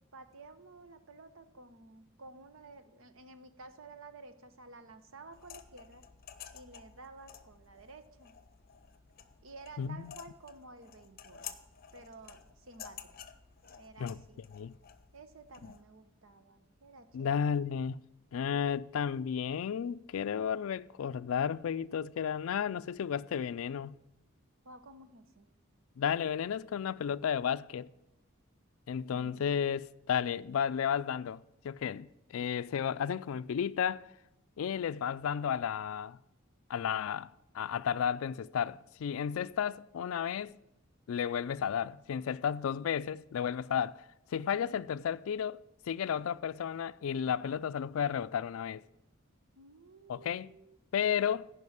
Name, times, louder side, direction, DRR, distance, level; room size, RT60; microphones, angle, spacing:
voice 1, 0.1-6.0 6.5-8.4 9.4-11.5 11.9-13.1 13.7-14.4 15.1-17.5 24.6-25.5 29.1-29.6 47.2-47.6 49.5-50.8, right 3 dB, 70° right, 0.9 m, -53 dB
sound 1, 5.3-15.8, left 9 dB, 45° left, 0.7 m, -52 dB
voice 2, 9.8-10.1 14.0-14.2 14.5-14.8 17.1-18.0 18.3-24.0 26.0-27.9 28.9-34.1 34.6-36.2 36.7-40.6 41.1-44.0 44.3-45.6 45.9-48.8 50.1-50.5 50.9-51.5, left 8 dB, 75° left, 0.3 m, -33 dB
10.5 x 5.4 x 8.5 m
head